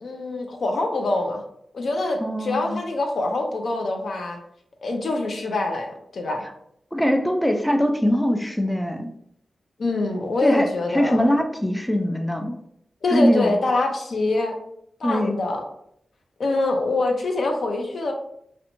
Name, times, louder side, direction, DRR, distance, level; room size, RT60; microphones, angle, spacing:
voice 1, 0.0-1.4 1.7-4.4 4.8-6.4 9.8-11.4 13.0-14.5 15.0-15.6 16.4-18.1, left 2 dB, 70° left, 3 dB, 0.4 m, -24 dB
voice 2, 2.2-2.8 6.9-9.1 10.4-12.6 13.1-13.5 15.0-15.4, equal, 5° left, 4 dB, 0.4 m, -22 dB
2.5 x 2.1 x 2.9 m, 0.73 s
cardioid pair, 50°, 0 cm